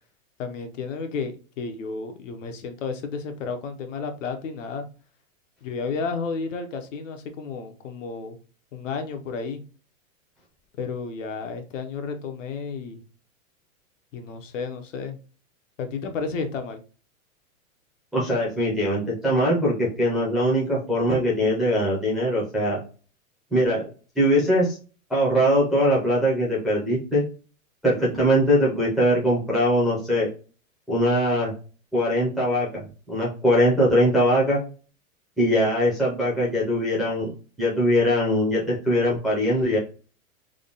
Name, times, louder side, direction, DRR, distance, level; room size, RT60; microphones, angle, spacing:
voice 1, 0.4-4.9 5.6-8.4 8.7-9.6 10.8-13.0 14.1-15.2 15.8-16.8, left 4 dB, 60° left, 6 dB, 0.9 m, -32 dB
voice 2, 18.1-22.8 23.5-23.8 24.1-24.8 25.1-27.2 27.8-30.3 30.9-31.5 31.9-34.6 35.4-37.3 37.6-39.8, equal, ahead, -8 dB, 0.5 m, -21 dB
3.6 x 2.2 x 3.8 m, 0.36 s
supercardioid pair, 165°, 42 cm